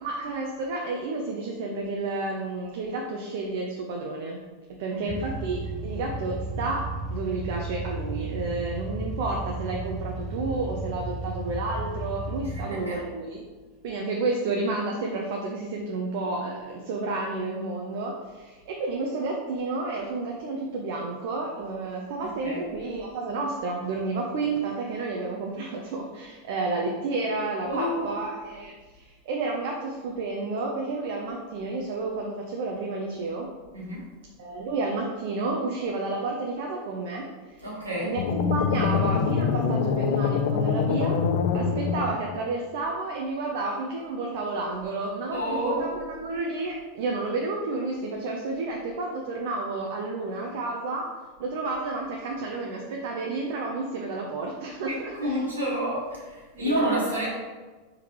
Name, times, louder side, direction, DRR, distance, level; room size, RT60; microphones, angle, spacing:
voice 1, 0.0-4.4 4.8-13.4 13.8-33.5 34.4-37.3 38.0-41.2 41.5-51.1 51.4-55.4 56.5-57.2, right 3 dB, 60° right, 0 dB, 0.6 m, -31 dB
sound 1, 5.1-12.7, right 2 dB, 10° left, 0.5 m, -34 dB
voice 2, 12.4-13.0 22.2-22.6 27.6-28.0 33.7-34.0 37.6-38.1 45.3-46.0 54.9-57.3, equal, 90° right, -6 dB, 1.4 m, -29 dB
sound 2, 38.2-42.4, left 6 dB, 60° left, 0.3 m, -25 dB
4.6 x 3.7 x 2.9 m, 1.3 s
figure-of-eight pair, 85°, 0 cm